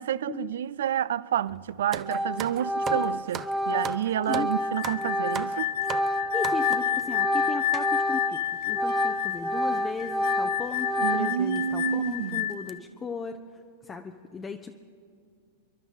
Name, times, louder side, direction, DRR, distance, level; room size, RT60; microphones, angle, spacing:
voice 1, 0.0-5.7 11.0-12.5, right 10 dB, 65° right, 0.4 m, -29 dB
Organ, 1.5-1.7 2.0-8.4 8.7-11.6, equal, ahead, 1.5 m, -29 dB
sound 1, 1.9-7.0 7.7-7.9 8.6-8.7 8.9-9.1 10.1-10.3 10.7-10.8 11.4-11.5 11.9-12.1 12.5-12.7, right 9 dB, 30° right, 0.7 m, -39 dB
sound 2, 4.6-12.8, left 12 dB, 60° left, 0.4 m, -30 dB
voice 2, 6.3-13.4 13.8-14.7, left 5 dB, 20° left, 0.7 m, -36 dB
28.5 x 11.5 x 4.0 m
figure-of-eight pair, 100°, 0 cm